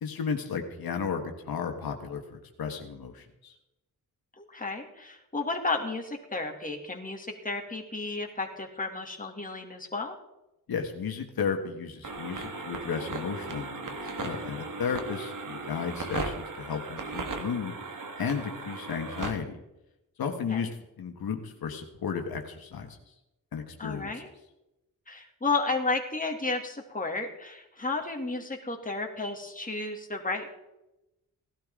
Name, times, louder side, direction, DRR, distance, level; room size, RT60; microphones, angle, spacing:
voice 1, 0.0-3.5 10.7-17.8 18.2-19.6 20.2-20.7 21.0-23.0 23.5-24.1, left 6 dB, 90° left, 4 dB, 1.6 m, -34 dB
voice 2, 4.4-10.2 20.5-20.7 23.8-24.3 25.1-30.5, left 3 dB, 25° left, 1 dB, 2.5 m, -32 dB
sound 1, 12.0-19.3, right 3 dB, 60° right, 1.8 m, -37 dB
17.5 x 12.0 x 3.8 m, 0.92 s
cardioid pair, 85°, 35 cm